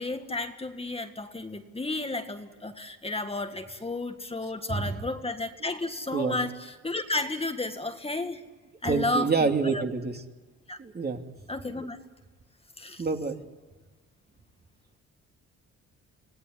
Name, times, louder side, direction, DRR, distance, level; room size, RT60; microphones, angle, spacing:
voice 1, 0.0-8.4 8.8-9.8 10.7-10.8 11.5-12.0 12.8-13.0, left 2 dB, 20° left, 6 dB, 1.9 m, -32 dB
voice 2, 8.8-10.2 10.8-11.2 13.0-13.4, right 4 dB, 30° right, 4 dB, 2.8 m, -27 dB
26.5 x 18.0 x 9.9 m, 1.3 s
cardioid pair, 90°, 30 cm